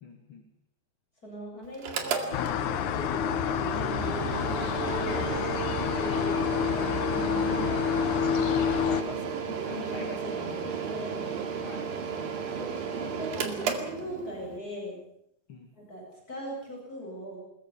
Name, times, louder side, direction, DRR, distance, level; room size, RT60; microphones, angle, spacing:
voice 1, 0.0-0.5 8.7-10.8 11.6-12.0 15.5-15.7, left 5 dB, 45° left, 5 dB, 1.9 m, -43 dB
voice 2, 1.2-5.2 6.0-8.2 9.7-11.4 12.5-15.0 15.8-17.4, equal, 20° left, -2 dB, 8.2 m, -40 dB
Mechanical fan, 1.7-14.6, right 6 dB, 60° right, 3.6 m, -34 dB
sound 1, 2.3-9.0, left 8 dB, 70° left, 2.0 m, -28 dB
21.5 x 21.5 x 7.0 m, 0.75 s
omnidirectional pair, 5.0 m